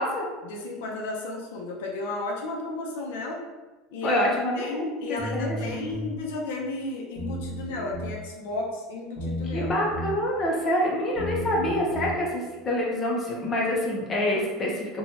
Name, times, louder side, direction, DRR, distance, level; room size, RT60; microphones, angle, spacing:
voice 1, 0.4-3.4 3.9-9.7, left 2 dB, 90° left, -1 dB, 0.5 m, -33 dB
voice 2, 4.0-5.6 9.5-15.0, left 1 dB, 25° left, -3 dB, 0.7 m, -26 dB
sound 1, 5.2-6.1 7.1-8.2 9.2-10.1 11.1-12.1, equal, 10° left, 1.1 m, -33 dB
3.0 x 2.2 x 2.8 m, 1.2 s
supercardioid pair, 135°, 0 cm